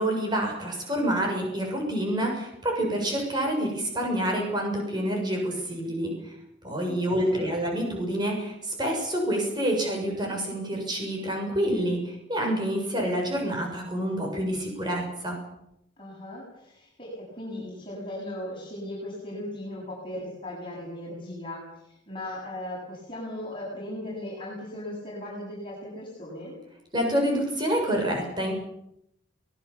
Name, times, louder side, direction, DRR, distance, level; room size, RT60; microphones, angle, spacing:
voice 1, 0.0-6.3 6.6-15.4 26.9-28.5, right 1 dB, 20° right, 1 dB, 7.0 m, -27 dB
voice 2, 6.9-7.5 16.0-26.6, left 1 dB, 25° left, -5 dB, 8.0 m, -38 dB
23.5 x 20.0 x 7.1 m, 0.79 s
head